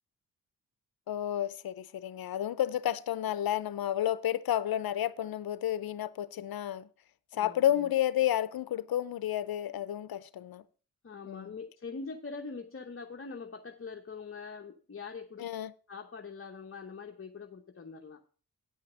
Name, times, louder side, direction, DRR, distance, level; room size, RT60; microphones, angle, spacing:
voice 1, 1.1-6.9 7.3-10.6 11.3-11.5 15.4-15.7, left 11 dB, 75° left, 0.7 m, -31 dB
voice 2, 7.3-7.9 11.0-15.5 15.9-18.2, left 4 dB, 35° left, 1.0 m, -43 dB
9.6 x 5.6 x 6.2 m
cardioid pair, 60°, 36 cm